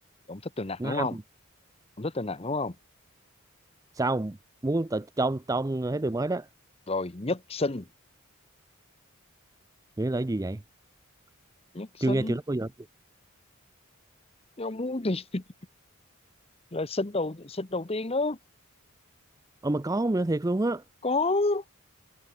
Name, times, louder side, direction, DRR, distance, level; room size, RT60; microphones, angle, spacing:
voice 1, 0.3-1.2 2.0-2.8 6.9-7.9 11.7-12.4 14.6-15.4 16.7-18.4 21.0-21.6, left 2 dB, 25° left, 1.0 m, -29 dB
voice 2, 4.0-4.4 4.6-6.5 10.0-10.6 12.0-12.7 19.6-20.8, right 2 dB, 15° right, 0.4 m, -27 dB
head